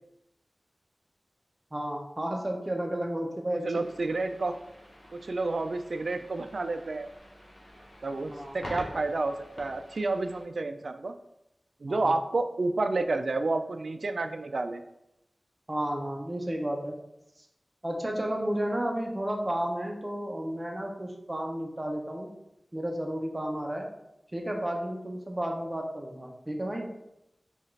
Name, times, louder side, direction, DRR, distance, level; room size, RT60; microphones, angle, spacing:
voice 1, 1.7-3.7 8.3-8.6 11.9-12.1 15.7-17.0 17.8-22.3 22.7-23.9 24.3-26.9, right 1 dB, 25° right, 1 dB, 0.7 m, -32 dB
voice 2, 3.6-4.6 5.1-7.1 8.0-11.2 11.8-14.8, right 3 dB, 70° right, 8 dB, 0.3 m, -30 dB
sound 1, 3.8-10.4, equal, 45° left, 1.1 m, -47 dB
5.5 x 2.4 x 3.2 m, 0.85 s
wide cardioid pair, 80°, 0 cm